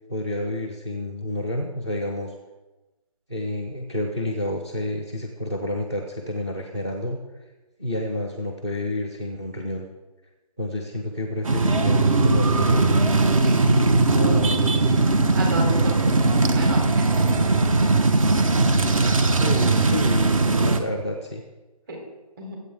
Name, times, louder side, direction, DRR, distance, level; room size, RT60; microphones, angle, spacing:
voice 1, 0.1-2.3 3.3-7.4 7.8-9.9 10.6-12.9 14.1-14.9 19.4-21.4, left 1 dB, 10° right, -2 dB, 0.4 m, -29 dB
sound 1, 11.4-20.8, right 3 dB, 60° right, 1.5 m, -19 dB
voice 2, 15.3-16.1 16.5-17.3 21.9-22.0 22.4-22.6, right 2 dB, 35° right, 0 dB, 3.8 m, -31 dB
22.5 x 8.4 x 3.7 m, 1.1 s
hypercardioid pair, 165°, 20 cm